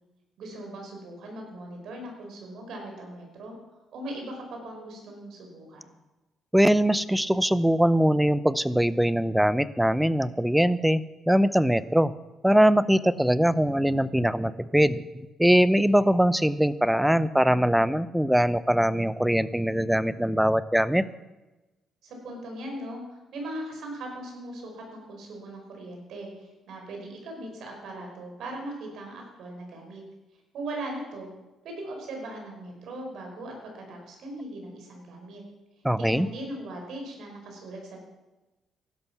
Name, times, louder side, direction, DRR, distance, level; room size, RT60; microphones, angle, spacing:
voice 1, 0.4-3.5 3.9-5.9 22.0-30.0 30.5-31.3 31.6-35.4 36.0-38.0, right 1 dB, 75° right, 2 dB, 5.3 m, -39 dB
voice 2, 6.5-12.1 12.4-15.0 15.4-21.0 35.8-36.3, equal, 5° right, 16 dB, 0.6 m, -22 dB
15.5 x 12.0 x 6.0 m, 1.1 s
cardioid pair, 90°, 0 cm